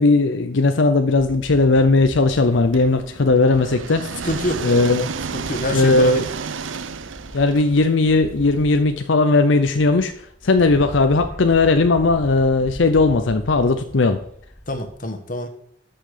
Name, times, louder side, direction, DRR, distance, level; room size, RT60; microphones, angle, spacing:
voice 1, 0.0-4.0 4.6-5.1 5.7-6.2 7.3-10.1 10.4-14.2, left 3 dB, 75° left, 7 dB, 0.7 m, -17 dB
sound 1, 1.2-15.0, equal, 10° left, 2.0 m, -40 dB
sound 2, 2.7-8.6, right 5 dB, 80° right, 0.6 m, -32 dB
voice 2, 4.2-4.8 5.3-6.3 14.7-15.5, left 1 dB, 45° left, 7 dB, 1.3 m, -26 dB
13.0 x 5.8 x 5.0 m, 0.65 s
head